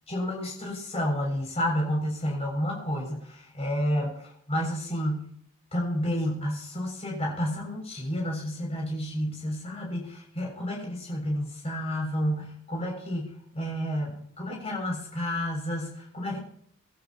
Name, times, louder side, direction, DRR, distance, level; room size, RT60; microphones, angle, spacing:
voice 1, 0.1-5.3 5.7-16.4, equal, 30° left, -1 dB, 6.9 m, -30 dB
27.5 x 12.5 x 3.0 m, 0.67 s
head